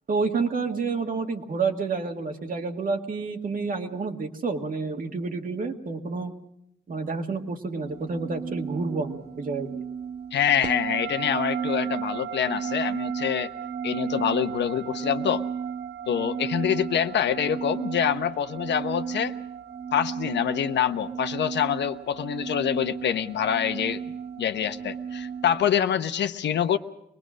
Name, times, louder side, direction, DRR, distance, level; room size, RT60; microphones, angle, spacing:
voice 1, 0.1-6.3 6.9-9.8, right 4 dB, 50° right, 4 dB, 2.0 m, -29 dB
sound 1, 7.8-25.8, right 7 dB, 65° right, 0.8 m, -34 dB
voice 2, 10.3-13.5 13.8-15.4 16.1-19.3 19.9-26.8, left 9 dB, 80° left, 9 dB, 1.0 m, -26 dB
24.5 x 20.0 x 6.3 m, 0.81 s
cardioid pair, 100°, 18 cm